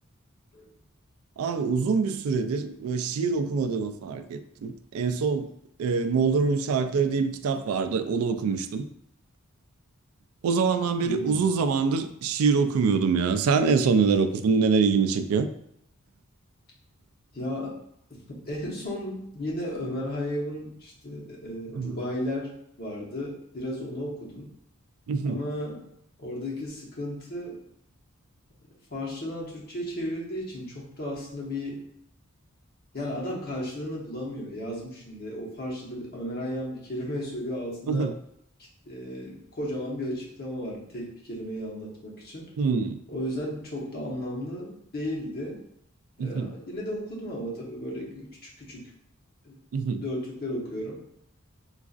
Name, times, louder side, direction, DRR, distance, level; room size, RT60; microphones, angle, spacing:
voice 1, 1.4-5.5 5.8-8.8 10.4-15.5 21.7-22.0 25.1-25.4 37.9-38.1 42.6-43.0 46.2-46.5 49.7-50.0, right 5 dB, 85° right, 0.3 m, -25 dB
voice 2, 11.0-11.4 17.3-17.8 18.1-22.5 22.8-24.5 25.2-25.8 26.2-27.6 28.9-31.8 32.9-38.1 38.8-42.5 43.1-45.6 46.2-48.3 48.6-48.9 49.4-49.6 50.0-51.0, equal, 45° left, 1.0 m, -34 dB
3.9 x 2.4 x 2.4 m
head